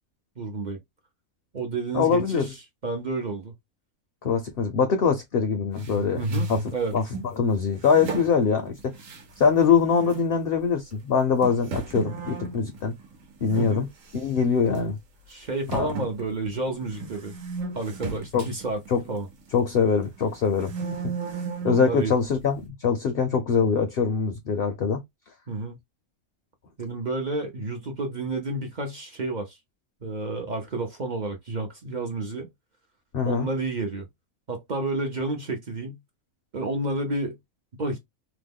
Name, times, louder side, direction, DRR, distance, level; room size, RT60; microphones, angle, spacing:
voice 1, 0.4-0.8 1.5-2.5 2.8-3.5 6.1-6.9 13.5-13.9 15.3-17.3 17.7-18.8 19.1-19.3 21.7-22.1 25.5-25.8 26.8-29.6 30.0-32.5 33.2-34.1 34.5-36.0 36.5-37.4 37.8-38.0, right 2 dB, 45° right, 0.6 m, -30 dB
voice 2, 1.9-2.5 4.2-6.2 6.5-6.6 6.9-7.0 7.3-8.9 9.4-12.9 13.4-13.9 14.1-15.0 15.7-15.9 18.3-18.5 18.9-19.0 19.5-21.1 21.6-25.0 33.1-33.5, left 6 dB, 55° left, 0.7 m, -23 dB
sound 1, 5.8-7.3 7.8-9.6 9.9-10.3 10.9-11.0 11.4-13.7 14.0-14.4 14.7-14.8 15.7-19.7 20.2-21.9, right 3 dB, 65° right, 1.2 m, -34 dB
2.9 x 2.1 x 3.5 m
omnidirectional pair, 1.5 m